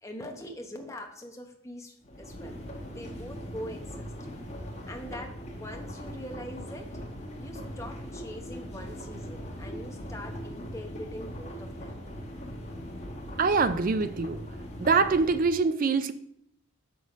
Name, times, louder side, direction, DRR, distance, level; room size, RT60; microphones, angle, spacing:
voice 1, 0.0-4.1 4.9-6.9 7.4-11.9, equal, 15° left, 0.9 m, -43 dB
sound 1, 2.0-15.4, equal, 30° left, 1.4 m, -40 dB
voice 2, 13.4-14.4 14.8-16.1, right 4 dB, 40° right, 0.4 m, -24 dB
6.7 x 6.2 x 5.1 m
head